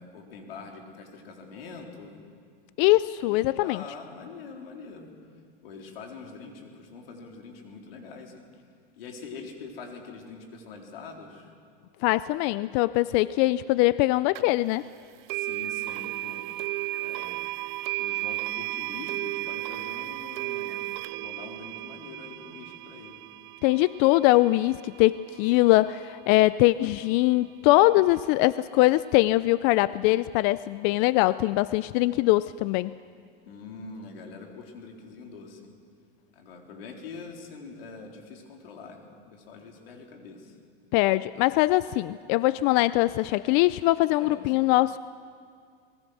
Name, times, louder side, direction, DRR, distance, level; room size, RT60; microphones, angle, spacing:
voice 1, 0.0-2.2 3.3-5.1 5.6-8.4 9.0-11.5 15.3-16.4 17.0-17.5 18.0-23.2 33.4-35.6 36.3-40.6 44.2-44.5, left 4 dB, 80° left, 2 dB, 3.8 m, -44 dB
voice 2, 2.8-3.8 12.0-14.9 23.6-32.9 40.9-45.0, left 18 dB, 50° left, 17 dB, 0.5 m, -22 dB
sound 1, 14.3-14.4 15.3-26.3, right 19 dB, 55° right, 0.5 m, -34 dB
25.5 x 21.0 x 6.3 m, 2.2 s
supercardioid pair, 120°, 29 cm